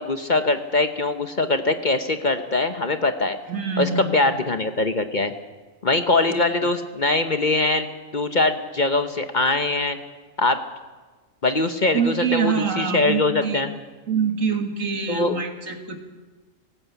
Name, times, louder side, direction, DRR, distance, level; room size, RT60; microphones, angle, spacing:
voice 1, 0.0-3.4 3.8-5.3 5.8-10.0 10.4-10.6 11.4-13.7 15.1-15.3, left 2 dB, 40° left, 8 dB, 1.0 m, -22 dB
voice 2, 3.5-4.1 6.3-6.4 11.9-13.6 14.1-16.0, right 6 dB, 75° right, 5 dB, 2.2 m, -25 dB
19.0 x 17.0 x 8.2 m, 1.3 s
omnidirectional pair, 1.4 m